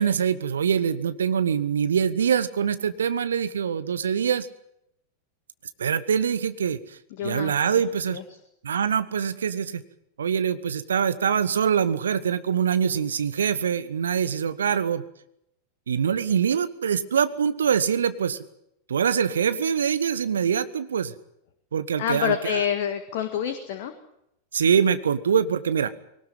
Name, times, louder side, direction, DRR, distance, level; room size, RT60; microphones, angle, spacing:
voice 1, 0.0-4.5 5.8-8.2 8.6-9.8 10.2-15.0 15.9-18.5 18.9-21.1 21.7-22.6 24.5-25.9, right 7 dB, 65° right, 13 dB, 1.1 m, -24 dB
voice 2, 7.2-7.8 8.1-8.2 22.0-23.9, left 9 dB, 50° left, 8 dB, 1.9 m, -27 dB
20.5 x 19.0 x 9.4 m, 0.78 s
figure-of-eight pair, 90°, 0 cm